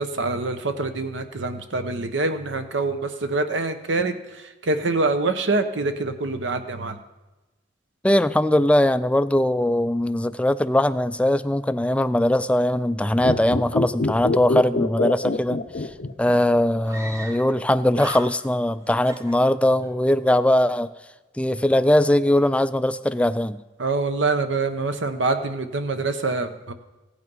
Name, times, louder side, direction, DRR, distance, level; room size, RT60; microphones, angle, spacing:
voice 1, 0.0-4.2 4.6-7.0 23.8-26.7, right 3 dB, 75° right, 8 dB, 0.9 m, -25 dB
voice 2, 8.0-15.6 16.2-20.9 21.4-23.6, left 1 dB, 5° left, 13 dB, 0.3 m, -20 dB
sound 1, 13.2-16.6 16.8-16.9, left 3 dB, 55° left, 0.6 m, -25 dB
Screaming, 15.8-15.9 16.1-16.2 16.9-17.7 17.9-18.7 19.0-20.0, right 1 dB, 15° right, 0.9 m, -38 dB
16.0 x 8.4 x 5.4 m, 1.1 s
head